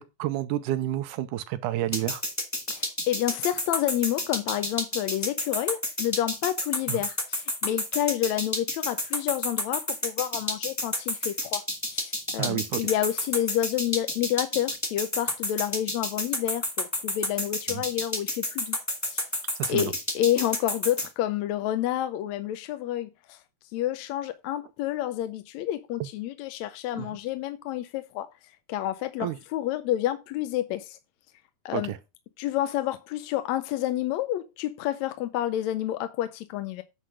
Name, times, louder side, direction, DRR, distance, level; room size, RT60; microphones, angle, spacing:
voice 1, 0.0-2.2 6.9-7.0 12.4-12.9 17.7-17.8 19.6-19.9 27.0-27.2 29.2-29.4 31.7-32.0, right 13 dB, 85° right, 2.2 m, -30 dB
sound 1, 1.9-21.1, left 1 dB, 15° left, 0.5 m, -29 dB
voice 2, 2.7-11.6 11.9-19.3 19.7-23.4 23.7-28.3 28.7-31.0 31.6-31.9 32.4-36.8, left 12 dB, 75° left, 1.7 m, -29 dB
9.6 x 3.7 x 6.2 m
omnidirectional pair, 3.6 m